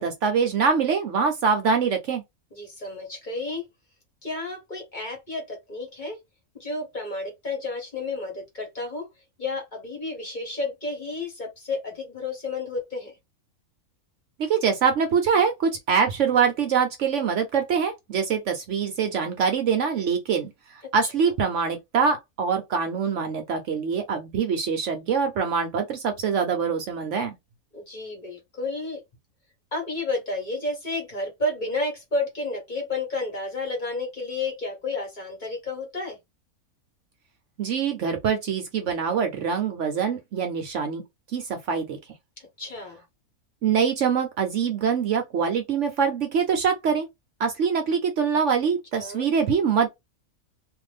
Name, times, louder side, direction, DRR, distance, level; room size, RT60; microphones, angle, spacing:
voice 1, 0.0-2.2 14.4-20.5 20.9-27.3 37.6-41.0 41.3-42.0 43.6-47.1 47.4-49.9, right 6 dB, 60° right, 0.9 m, -24 dB
voice 2, 2.5-3.6 4.2-6.2 6.5-9.1 9.4-13.2 21.0-21.1 27.7-29.0 29.7-36.2 42.4-43.0 49.0-49.3, left 2 dB, 35° left, 1.2 m, -31 dB
2.6 x 2.5 x 3.3 m
omnidirectional pair, 1.5 m